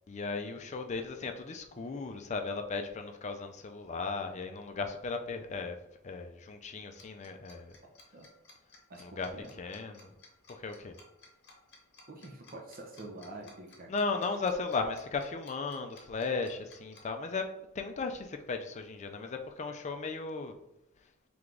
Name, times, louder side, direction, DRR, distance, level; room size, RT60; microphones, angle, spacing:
voice 1, 0.1-5.8 6.0-7.7 9.0-10.1 10.5-11.0 13.9-20.6, left 4 dB, 35° left, 0.4 m, -36 dB
Tick-tock, 7.0-17.0, left 3 dB, 55° left, 0.9 m, -56 dB
voice 2, 8.9-9.5 12.1-13.9, right 2 dB, 45° right, 0.6 m, -46 dB
3.4 x 3.2 x 3.8 m
head